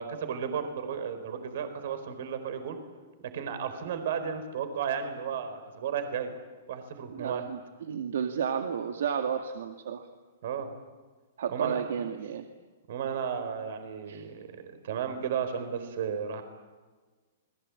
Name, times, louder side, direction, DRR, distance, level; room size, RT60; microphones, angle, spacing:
voice 1, 0.0-2.8 3.3-6.3 6.7-7.4 10.4-10.7 11.5-11.9 12.9-16.4, right 7 dB, 60° right, 9 dB, 4.5 m, -34 dB
voice 2, 7.1-10.1 11.4-12.5 14.1-14.2, right 7 dB, 75° right, 5 dB, 2.2 m, -32 dB
30.0 x 22.0 x 8.7 m, 1.4 s
hypercardioid pair, 160°, 0 cm